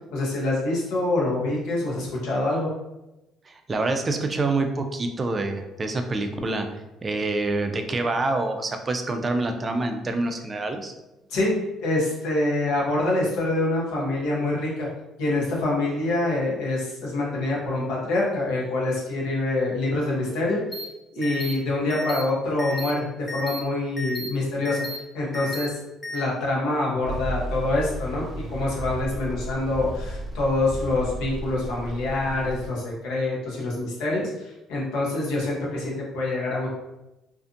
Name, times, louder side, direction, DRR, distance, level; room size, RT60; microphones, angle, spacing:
voice 1, 0.1-2.7 11.3-11.5 11.8-14.9 15.2-20.6 21.1-25.7 26.1-36.7, left 2 dB, 80° left, -4 dB, 0.9 m, -26 dB
voice 2, 3.5-6.7 7.0-10.9, right 2 dB, 30° right, 6 dB, 0.4 m, -26 dB
sound 1, 20.7-20.8 21.2-21.5 21.9-22.2 22.6-22.9 23.3-23.6 24.0-24.3 24.6-25.0 25.3-25.7 26.0-26.2, left 1 dB, 25° left, 0.5 m, -33 dB
sound 2, 27.0-32.7, right 1 dB, 10° right, 0.9 m, -34 dB
2.5 x 2.5 x 2.4 m, 0.96 s
supercardioid pair, 85°, 0 cm